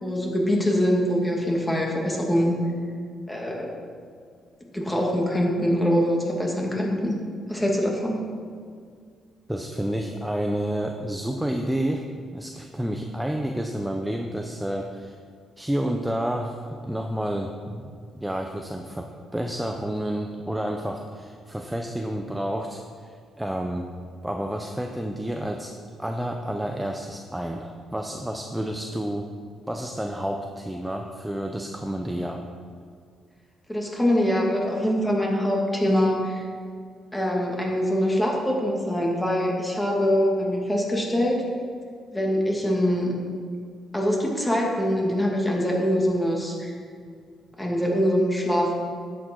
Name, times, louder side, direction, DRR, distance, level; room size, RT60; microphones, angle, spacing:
voice 1, 0.0-2.6 3.3-3.7 4.7-7.1 7.5-8.2 33.7-36.5 37.1-41.4 42.1-43.1 43.9-46.7 47.6-48.8, equal, 10° left, -2 dB, 2.4 m, -23 dB
voice 2, 9.5-15.1 15.6-17.9 18.1-23.9 24.2-29.3 29.7-32.5, right 1 dB, 5° right, 3 dB, 0.7 m, -30 dB
10.5 x 8.6 x 4.7 m, 2.1 s
cardioid pair, 90°, 0 cm